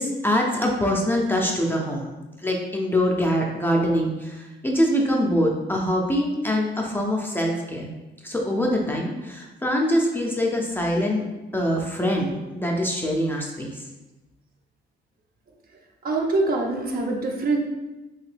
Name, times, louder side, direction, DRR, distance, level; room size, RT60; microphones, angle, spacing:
voice 1, 0.0-2.1 2.4-7.9 8.2-11.2 11.5-13.8, equal, 10° left, -1 dB, 0.5 m, -24 dB
voice 2, 16.0-17.6, right 2 dB, 50° right, 0 dB, 0.6 m, -24 dB
2.9 x 2.8 x 3.2 m, 1.1 s
cardioid pair, 90°, 20 cm